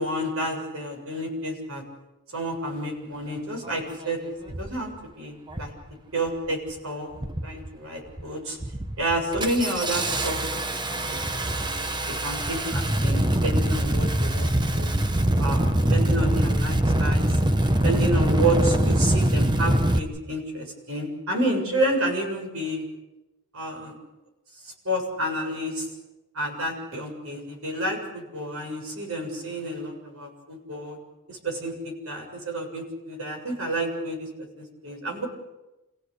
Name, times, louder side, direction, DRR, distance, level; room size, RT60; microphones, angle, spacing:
voice 1, 0.0-1.8 2.3-4.9 5.2-5.7 6.1-7.1 7.4-8.6 9.0-11.2 11.5-14.9 15.4-17.4 17.8-22.8 23.5-23.9 24.6-25.9 26.3-31.0 31.3-34.3 34.6-35.3, right 1 dB, 65° right, 2 dB, 7.4 m, -30 dB
Engine starting, 3.7-3.8 4.5-4.8 5.5-5.8 6.2-6.7 7.1-7.7 8.1-8.3 8.6-20.0, right 1 dB, 20° right, 1.2 m, -23 dB
29.5 x 16.5 x 8.3 m, 1.0 s
head